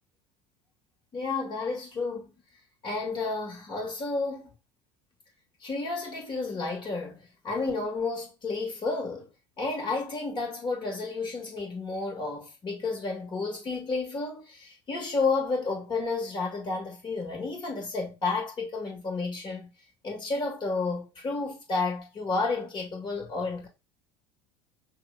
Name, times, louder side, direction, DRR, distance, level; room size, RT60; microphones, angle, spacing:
voice 1, 1.1-2.3 2.8-4.5 5.6-9.3 9.6-19.7 20.0-23.7, left 3 dB, 35° left, 1.9 m, -31 dB
5.6 x 2.6 x 3.4 m
figure-of-eight pair, 70°, 14 cm